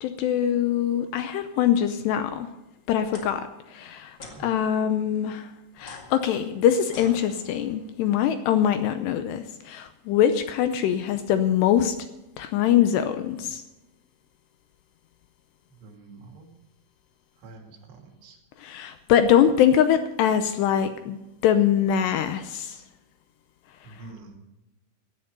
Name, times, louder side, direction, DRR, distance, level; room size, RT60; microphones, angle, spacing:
voice 1, 0.0-2.5 2.9-3.4 3.7-4.1 4.4-5.5 5.8-11.9 12.4-13.6 18.6-22.8, left 9 dB, 80° left, 9 dB, 2.6 m, -23 dB
sound 1, 3.0-3.3 4.1-4.4 5.7-7.8, left 3 dB, 50° left, 1.3 m, -45 dB
voice 2, 15.8-16.5 17.4-18.4 23.8-24.4, right 3 dB, 85° right, 1 dB, 5.0 m, -46 dB
16.5 x 11.0 x 5.4 m, 0.98 s
omnidirectional pair, 5.4 m